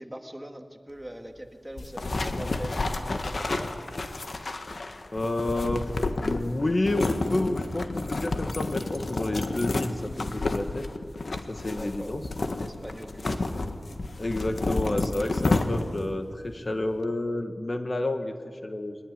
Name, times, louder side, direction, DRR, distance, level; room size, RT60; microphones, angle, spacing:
voice 1, 0.0-2.7 3.0-3.7 11.7-12.2 12.6-13.7, right 1 dB, 10° right, 5 dB, 2.1 m, -42 dB
sound 1, 1.8-16.1, left 2 dB, 65° left, 1.6 m, -30 dB
voice 2, 5.1-5.9 6.2-10.9 11.5-12.3 14.2-19.0, left 2 dB, 45° left, 7 dB, 1.6 m, -30 dB
23.0 x 20.0 x 9.6 m, 2.1 s
wide cardioid pair, 70°, 0 cm